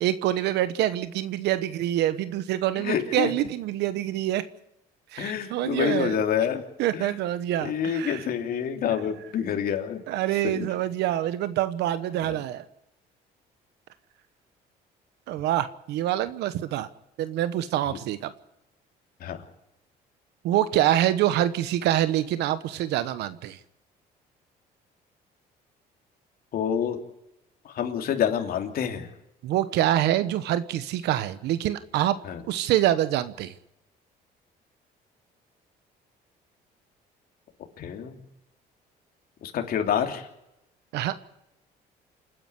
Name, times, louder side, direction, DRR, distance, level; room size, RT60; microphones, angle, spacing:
voice 1, 0.0-4.4 5.1-6.2 6.8-8.2 10.1-12.7 15.3-16.9 17.2-18.3 20.4-23.6 29.4-32.2 32.5-33.5 40.9-41.1, right 13 dB, 80° right, 12 dB, 1.1 m, -26 dB
voice 2, 2.8-3.3 5.2-6.6 6.9-7.1 7.6-10.0 10.4-10.7 12.2-12.4 19.2-19.4 26.5-27.0 27.6-29.1 32.2-32.4 37.8-38.2 39.4-40.3, left 8 dB, 60° left, 4 dB, 3.2 m, -27 dB
28.0 x 10.0 x 9.8 m, 0.87 s
cardioid pair, 110°, 17 cm